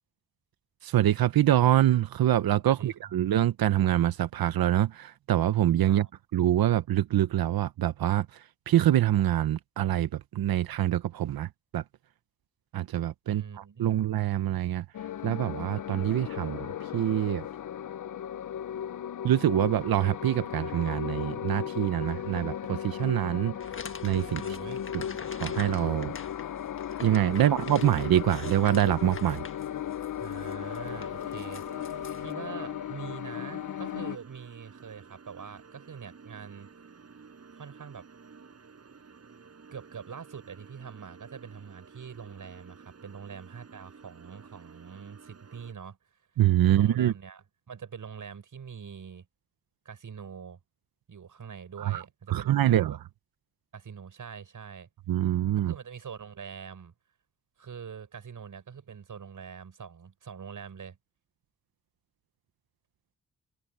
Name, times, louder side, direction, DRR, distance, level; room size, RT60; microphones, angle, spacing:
voice 1, 0.8-6.1 6.3-11.8 12.7-14.8 15.2-17.5 19.2-23.6 24.0-24.6 25.4-26.1 27.0-29.4 46.4-47.1 51.8-52.0 52.3-53.0 55.1-55.7, right 12 dB, 90° right, 0.7 m, -25 dB
voice 2, 2.6-3.1 5.9-6.1 13.3-14.0 24.4-24.8 27.3-27.5 30.2-31.6 32.2-36.7 37.6-38.1 39.7-46.0 46.6-49.3 49.8-50.6 51.1-53.0 53.7-54.9 55.6-56.9 57.6-61.0, right 7 dB, 65° right, 6.7 m, -44 dB
sound 1, 14.9-34.2, left 10 dB, 60° left, 0.6 m, -36 dB
sound 2, 23.6-32.3, left 5 dB, 35° left, 1.5 m, -45 dB
sound 3, 30.6-45.7, right 5 dB, 45° right, 6.4 m, -52 dB
wide cardioid pair, 130°, 35 cm